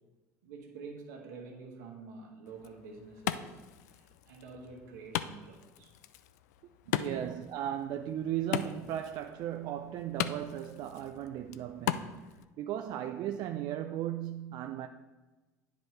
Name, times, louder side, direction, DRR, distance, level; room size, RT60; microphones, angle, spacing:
voice 1, 0.4-5.9 6.8-7.3, right 4 dB, 75° right, 1.4 m, -48 dB
Wood, 2.4-12.4, left 12 dB, 75° left, 0.4 m, -39 dB
voice 2, 7.0-12.2 12.6-14.9, right 11 dB, 55° right, 0.4 m, -36 dB
10.0 x 4.8 x 3.2 m
hypercardioid pair, 70°, 9 cm